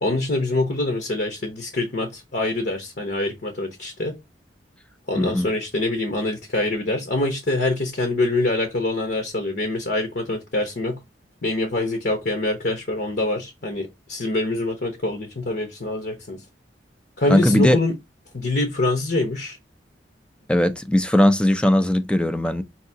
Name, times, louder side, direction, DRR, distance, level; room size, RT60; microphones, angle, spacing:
voice 1, 0.0-4.2 5.1-11.0 11.4-16.4 17.2-17.9 18.3-19.6, left 2 dB, 60° left, 0.8 m, -25 dB
voice 2, 5.2-5.5 17.3-17.8 20.5-22.6, left 1 dB, 5° left, 0.4 m, -19 dB
5.6 x 2.7 x 2.7 m
head